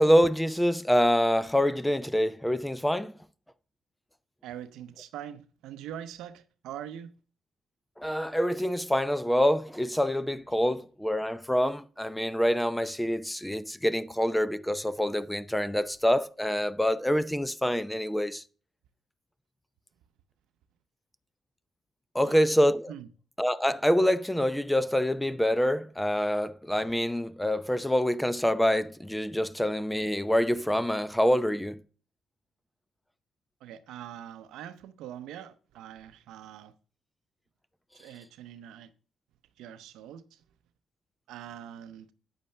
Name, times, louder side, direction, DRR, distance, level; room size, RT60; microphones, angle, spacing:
voice 1, 0.0-3.1 8.0-18.4 22.1-22.9 23.4-31.8, equal, 5° left, 0.6 m, -26 dB
voice 2, 4.4-7.1 22.2-22.4 22.9-23.1 33.6-36.7 38.0-38.9 39.6-40.4 41.3-42.1, right 10 dB, 90° right, 0.7 m, -43 dB
9.6 x 8.6 x 3.3 m
cardioid pair, 70°, 0 cm